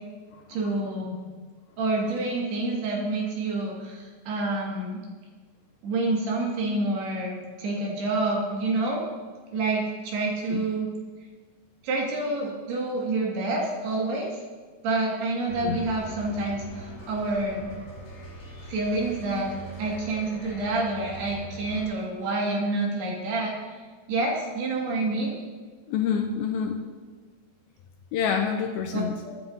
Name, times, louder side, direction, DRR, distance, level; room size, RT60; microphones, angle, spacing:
voice 1, 0.5-1.2 1.8-5.0 5.8-9.0 9.5-10.9 11.8-14.4 14.8-17.7 18.7-19.5 19.8-23.7 24.1-25.3 28.9-29.4, right 2 dB, 70° right, -2 dB, 4.0 m, -28 dB
sound 1, 15.5-21.8, right 1 dB, 45° left, 4.3 m, -42 dB
voice 2, 25.9-26.8 28.1-29.2, left 7 dB, 75° left, 3 dB, 2.3 m, -27 dB
23.0 x 9.5 x 2.8 m, 1.5 s
omnidirectional pair, 4.8 m